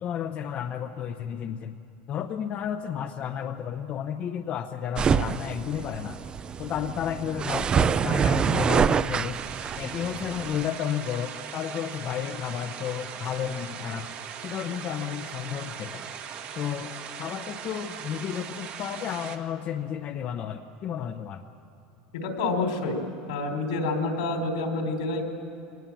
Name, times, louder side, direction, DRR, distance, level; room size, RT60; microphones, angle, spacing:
voice 1, 0.0-1.7 2.1-6.2 6.6-9.4 9.8-14.1 14.4-16.1 16.6-16.9 17.2-21.4, left 9 dB, 40° left, 6 dB, 0.8 m, -32 dB
sound 1, 5.0-10.7, right 7 dB, 25° right, 0.4 m, -26 dB
sound 2, 9.3-19.4, right 8 dB, 45° right, 1.6 m, -39 dB
voice 2, 22.1-23.0 23.3-25.2, left 3 dB, 85° left, 4 dB, 3.8 m, -28 dB
22.5 x 18.5 x 7.3 m, 2.8 s
supercardioid pair, 135°, 4 cm